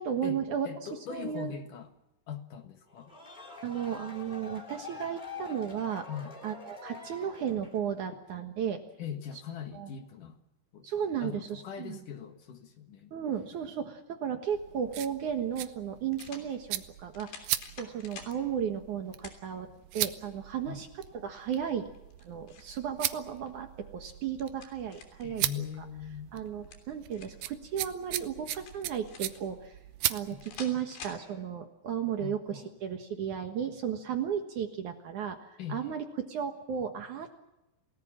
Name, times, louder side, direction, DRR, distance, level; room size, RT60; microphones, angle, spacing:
voice 1, 0.0-1.5 3.6-6.1 6.4-8.8 9.7-9.9 10.8-12.0 13.1-17.4 17.8-19.7 19.9-20.9 21.1-21.9 22.2-25.7 26.3-29.8 30.1-37.4, right 8 dB, 60° right, 6 dB, 2.5 m, -34 dB
voice 2, 0.6-1.9 2.3-3.1 6.1-6.3 9.0-10.4 10.7-10.9 11.2-13.2 20.7-20.8 25.2-26.4 32.2-32.7 35.6-36.0, left 8 dB, 60° left, 6 dB, 2.8 m, -41 dB
sound 1, 2.9-7.9, left 4 dB, 15° left, 2.6 m, -45 dB
sound 2, 14.5-30.7, right 14 dB, 75° right, 2.7 m, -39 dB
sound 3, 14.9-15.0 16.1-16.5 17.1-18.4 19.2-19.4 20.0-20.1 21.9-22.8 24.1-25.3 26.5-27.5 28.5-29.4 30.4-31.2, left 6 dB, 85° left, 5.4 m, -48 dB
29.0 x 18.5 x 7.5 m, 0.92 s
omnidirectional pair, 4.7 m